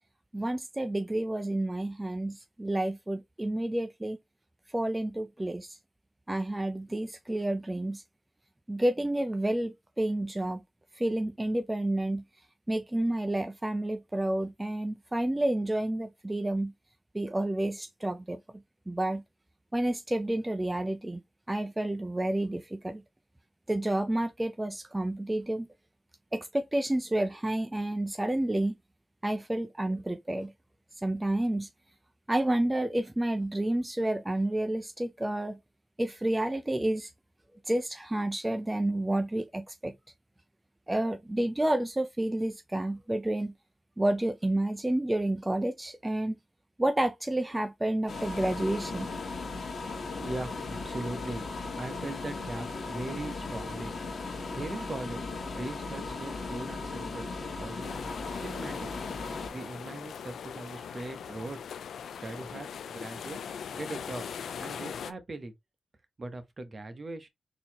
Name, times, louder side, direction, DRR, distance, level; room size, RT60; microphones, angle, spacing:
voice 1, 0.3-4.2 4.7-5.8 6.3-8.0 8.7-10.6 11.0-12.2 12.7-16.7 17.1-18.4 18.9-19.2 19.7-21.2 21.5-23.0 23.7-25.7 26.3-28.7 29.2-30.5 31.0-31.7 32.3-35.6 36.0-37.1 37.7-39.9 40.9-43.5 44.0-46.4 46.8-49.1, right 1 dB, 20° right, 0.5 m, -30 dB
sound 1, 48.1-59.5, left 3 dB, 65° left, 1.3 m, -37 dB
voice 2, 50.1-51.4 51.8-53.9 54.5-55.3 55.5-57.3 57.6-58.0 58.3-58.9 59.5-61.6 62.1-63.4 63.7-64.2 64.6-65.5 66.2-67.3, right 2 dB, 45° right, 1.0 m, -39 dB
sound 2, 57.8-65.1, left 7 dB, 85° left, 0.3 m, -40 dB
4.0 x 2.8 x 3.0 m
cardioid pair, 50°, 0 cm